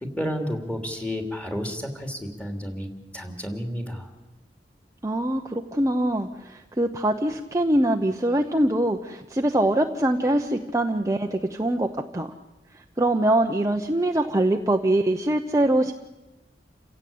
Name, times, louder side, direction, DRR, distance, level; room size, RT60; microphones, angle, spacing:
voice 1, 0.0-4.1, equal, 10° left, 4 dB, 3.0 m, -31 dB
voice 2, 5.0-12.3 13.0-15.9, right 1 dB, 20° right, 4 dB, 0.8 m, -23 dB
28.5 x 16.5 x 8.6 m, 1.0 s
head